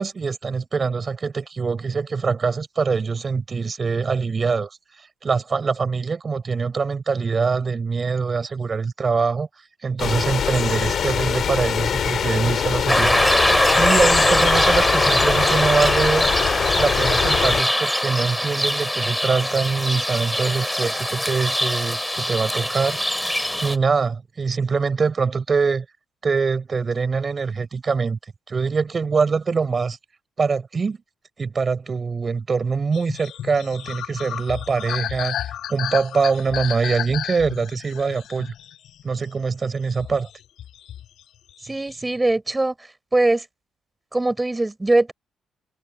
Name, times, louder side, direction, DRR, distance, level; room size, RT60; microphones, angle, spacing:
voice 1, 0.0-4.7 5.0-9.5 9.8-16.3 16.8-23.0 23.6-25.9 26.2-28.2 28.5-30.0 30.4-31.0 31.4-38.5 39.0-40.3, right 5 dB, 35° right, 7.1 m, -23 dB
sound 1, 10.0-17.6, left 8 dB, 55° left, 6.4 m, -23 dB
sound 2, 12.9-23.8, equal, 5° left, 2.9 m, -21 dB
sound 3, 32.9-39.4 39.8-41.2 41.5-42.1, left 11 dB, 75° left, 7.3 m, -33 dB
voice 2, 41.6-42.7 43.1-43.4 44.1-45.1, right 2 dB, 15° right, 6.4 m, -21 dB
cardioid pair, 90°, 0 cm